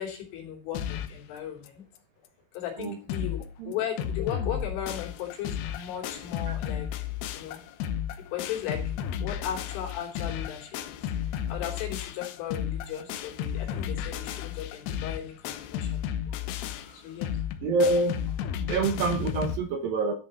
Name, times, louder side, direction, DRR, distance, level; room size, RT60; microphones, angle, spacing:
voice 1, 0.0-1.8 2.6-6.9 7.3-7.6 8.3-11.0 11.3-16.0 16.3-16.4 16.9-17.3, left 10 dB, 90° left, 1 dB, 5.7 m, -36 dB
sound 1, 0.7-1.2 1.7-1.8 2.0-2.1 2.5-2.6 2.8-3.4 3.7-19.6, left 9 dB, 75° left, 2.7 m, -33 dB
voice 2, 17.6-18.2 18.7-20.1, right 3 dB, 70° right, 6 dB, 2.3 m, -26 dB
13.5 x 5.6 x 7.0 m, 0.35 s
omnidirectional pair, 5.4 m